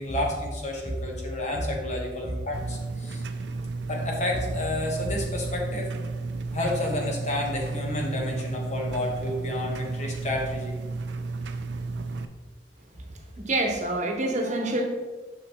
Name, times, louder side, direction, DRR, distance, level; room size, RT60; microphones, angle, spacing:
voice 1, 0.0-3.2 3.9-5.9 6.5-10.8 12.9-13.0, left 1 dB, 40° left, 0 dB, 1.3 m, -30 dB
sound 1, 2.5-12.2, right 3 dB, 80° right, 0.4 m, -33 dB
voice 2, 13.4-14.8, right 2 dB, 45° right, 2 dB, 1.0 m, -26 dB
6.8 x 5.9 x 3.1 m, 1.3 s
head